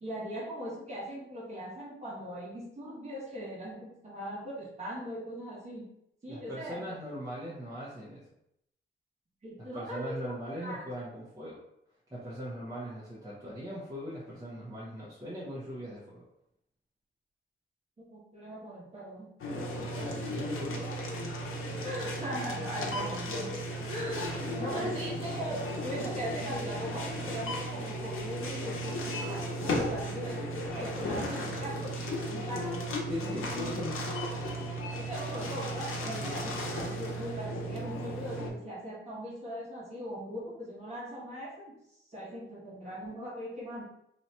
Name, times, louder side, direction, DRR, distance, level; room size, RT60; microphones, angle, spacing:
voice 1, 0.0-5.9 6.2-7.0 9.4-10.8 18.0-19.3 21.8-23.6 23.9-32.7 35.0-41.7 42.1-43.8, equal, 35° right, -6 dB, 1.2 m, -40 dB
voice 2, 6.3-8.3 9.7-11.6 12.1-16.2 19.8-21.3 24.6-24.9 33.1-34.1 36.2-36.4, equal, 15° right, -9 dB, 0.8 m, -40 dB
sound 1, 19.4-38.5, equal, 85° left, 0.8 m, -35 dB
2.8 x 2.3 x 4.2 m, 0.78 s
wide cardioid pair, 160°, 21 cm